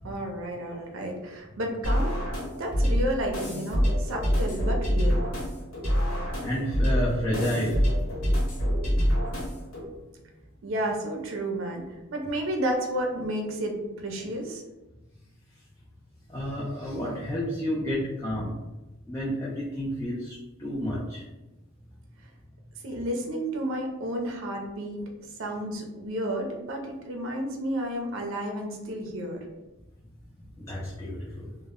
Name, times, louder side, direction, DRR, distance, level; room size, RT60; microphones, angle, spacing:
voice 1, 0.0-2.1 2.6-5.3 10.6-13.8 14.0-14.6 22.8-25.1 25.4-29.4, right 1 dB, 60° right, 2 dB, 0.5 m, -31 dB
sound 1, 1.8-9.8, equal, 75° left, 1.1 m, -26 dB
voice 2, 4.1-4.6 6.4-8.2 8.6-8.9 16.3-18.5 19.1-21.2 30.6-31.5, equal, 15° left, -7 dB, 0.4 m, -31 dB
2.1 x 2.1 x 3.5 m, 1.0 s
head